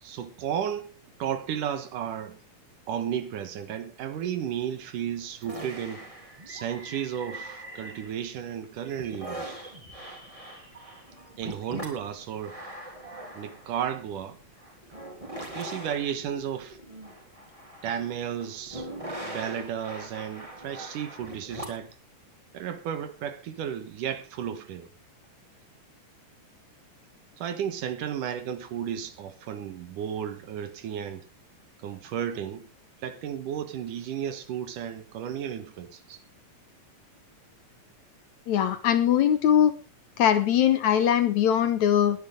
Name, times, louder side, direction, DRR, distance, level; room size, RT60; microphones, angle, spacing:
voice 1, 0.0-2.4 2.9-6.1 6.5-9.5 11.4-12.6 13.3-14.4 15.5-16.8 17.8-18.9 19.2-21.9 22.5-24.9 27.4-31.3 31.8-32.7 33.0-36.2, right 9 dB, 70° right, 2.8 m, -33 dB
sound 1, 5.4-8.4 8.8-21.9, right 1 dB, 10° right, 3.2 m, -41 dB
voice 2, 38.5-39.7 40.2-42.2, left 9 dB, 65° left, 2.2 m, -21 dB
20.0 x 10.0 x 3.8 m
omnidirectional pair, 4.0 m